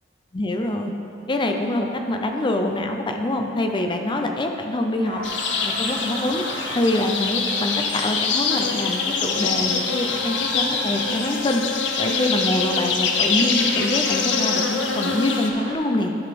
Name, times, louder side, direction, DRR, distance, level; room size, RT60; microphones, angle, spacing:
voice 1, 0.3-0.9 1.3-5.2 5.6-6.4 6.7-11.6 12.0-16.2, left 1 dB, 25° left, 4 dB, 0.6 m, -25 dB
sound 1, 5.0-15.7, right 1 dB, 40° right, 1.1 m, -38 dB
sound 2, 5.2-15.5, left 5 dB, 70° left, 0.7 m, -24 dB
11.5 x 4.0 x 5.1 m, 2.6 s
head